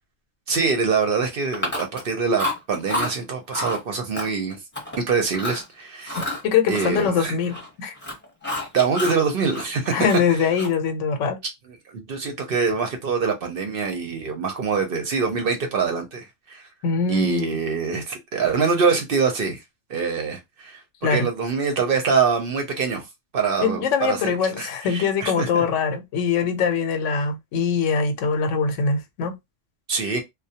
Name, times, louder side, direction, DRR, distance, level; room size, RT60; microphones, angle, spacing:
voice 1, 0.5-4.6 5.0-6.2 6.7-7.4 8.7-9.9 11.9-16.7 17.1-19.6 19.9-23.1 23.3-24.2 24.5-25.6 29.9-30.2, right 5 dB, 60° right, 0.7 m, -24 dB
Chewing mastication, 1.5-2.1 2.4-3.1 3.5-3.8 4.1-5.0 5.3-5.6 6.0-7.7 7.9-9.2 9.5-10.9, left 1 dB, 10° left, 0.8 m, -29 dB
voice 2, 6.4-7.9 9.9-11.4 16.8-17.6 21.0-21.3 23.6-29.4, left 6 dB, 85° left, 0.9 m, -23 dB
2.2 x 2.0 x 2.7 m
omnidirectional pair, 1.2 m